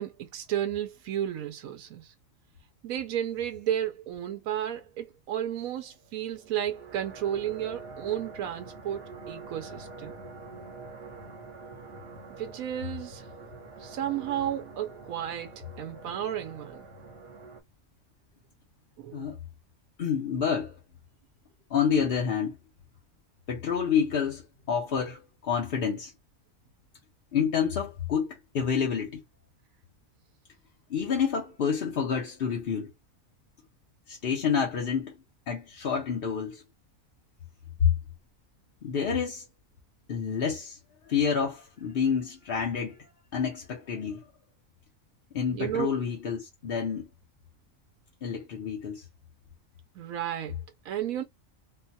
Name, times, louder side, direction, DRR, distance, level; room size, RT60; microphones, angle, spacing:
voice 1, 0.0-2.1 2.8-10.1 12.3-13.3 13.8-16.9 19.0-19.3 45.5-45.9 50.0-51.2, right 10 dB, 90° right, 1.0 m, -33 dB
sound 1, 6.2-17.6, right 3 dB, 50° right, 1.2 m, -45 dB
voice 2, 20.0-20.7 21.7-22.6 23.5-26.1 27.3-29.2 30.9-32.9 34.1-35.1 35.5-36.6 37.8-37.9 38.8-39.4 40.1-40.8 41.1-43.0 43.3-44.2 45.3-47.1 48.2-49.0, left 7 dB, 50° left, 0.8 m, -28 dB
3.8 x 2.2 x 2.7 m
omnidirectional pair, 1.4 m